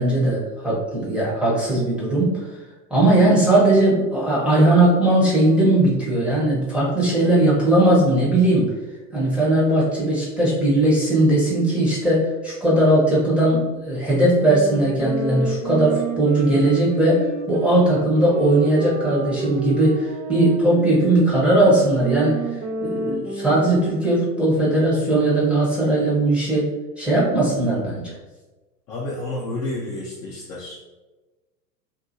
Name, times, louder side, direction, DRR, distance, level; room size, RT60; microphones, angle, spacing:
voice 1, 0.0-2.4 2.9-8.7 9.1-22.4 22.8-26.7 27.0-28.0, right 1 dB, ahead, -8 dB, 0.8 m, -18 dB
sound 1, 14.3-24.3, right 2 dB, 35° right, 0.4 m, -30 dB
voice 2, 28.9-30.8, left 2 dB, 30° left, -5 dB, 0.6 m, -30 dB
2.7 x 2.6 x 2.6 m, 1.2 s
hypercardioid pair, 100°, 50 cm